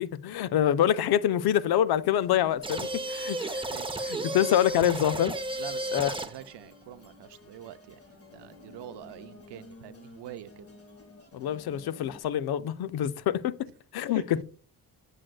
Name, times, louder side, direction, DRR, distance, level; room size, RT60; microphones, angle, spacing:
voice 1, 0.0-3.7 4.1-5.3 5.9-6.1 11.3-14.4, left 11 dB, 65° left, 0.5 m, -26 dB
sound 1, 1.9-12.2, left 3 dB, 35° left, 1.6 m, -53 dB
sound 2, 2.6-6.5, right 1 dB, 15° right, 0.6 m, -33 dB
voice 2, 3.7-4.0 5.6-8.0 8.3-10.7 14.1-14.4, right 12 dB, 80° right, 0.6 m, -45 dB
7.5 x 6.3 x 2.3 m
cardioid pair, 80°, 41 cm